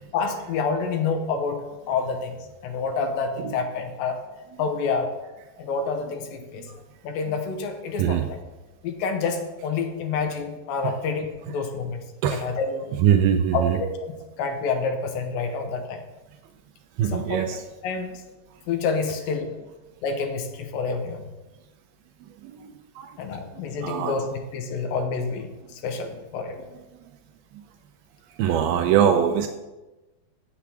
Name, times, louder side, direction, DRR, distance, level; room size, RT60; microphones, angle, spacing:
voice 1, 0.1-1.6 1.9-2.3 2.6-4.2 4.6-5.1 5.6-6.6 7.0-8.4 8.8-12.0 12.3-12.9 13.5-14.1 14.4-16.0 17.0-17.5 17.8-18.1 18.7-19.5 20.0-21.2 23.2-26.6, left 4 dB, 75° left, 4 dB, 2.2 m, -28 dB
voice 2, 13.0-13.8 17.0-17.6 22.4-22.7 23.0-23.1 23.8-24.3 28.4-29.5, right 9 dB, 90° right, 6 dB, 2.1 m, -22 dB
8.4 x 7.1 x 6.0 m, 1.1 s
omnidirectional pair, 5.0 m